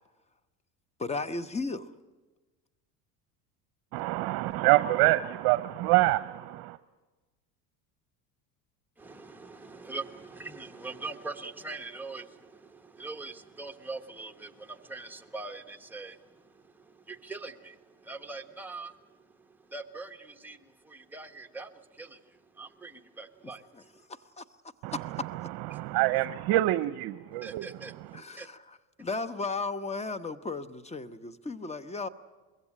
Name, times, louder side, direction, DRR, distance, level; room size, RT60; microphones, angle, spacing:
voice 1, 1.0-1.9 24.4-24.5 24.9-25.5 28.1-28.6 29.0-32.1, left 3 dB, 15° left, 1.0 m, -35 dB
voice 2, 3.9-6.8 24.8-24.9 25.7-27.7, right 17 dB, 60° right, 0.8 m, -26 dB
voice 3, 9.0-24.1 25.7-25.8 27.4-28.5, right 3 dB, 5° right, 1.2 m, -43 dB
22.0 x 16.0 x 9.9 m
supercardioid pair, 95°, 43 cm